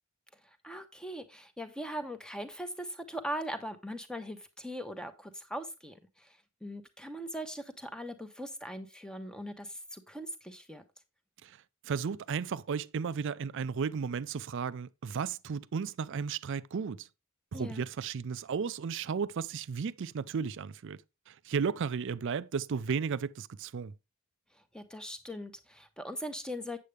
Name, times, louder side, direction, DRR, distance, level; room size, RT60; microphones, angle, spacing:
voice 1, 0.3-10.8 17.5-17.8 24.5-26.8, equal, 5° left, 0.9 m, -40 dB
voice 2, 11.8-17.1 17.5-21.0 21.3-23.9, right 6 dB, 55° right, 0.4 m, -34 dB
8.2 x 7.7 x 3.3 m
head